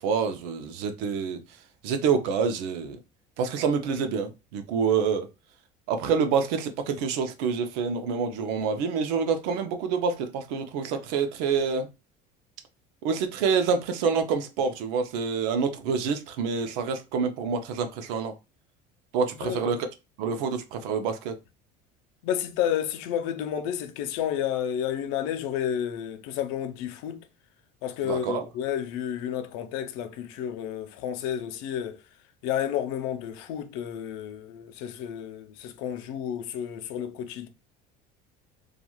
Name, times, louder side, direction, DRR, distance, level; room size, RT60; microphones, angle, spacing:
voice 1, 0.0-1.4 1.8-3.0 3.4-5.3 5.9-11.9 13.0-18.3 19.1-19.8 20.2-21.3 28.0-28.4, right 5 dB, 80° right, 0.6 m, -27 dB
voice 2, 19.4-19.8 22.2-27.2 27.8-32.0 32.4-37.5, left 9 dB, 75° left, 0.5 m, -31 dB
2.9 x 2.4 x 2.3 m
supercardioid pair, 100°, 20 cm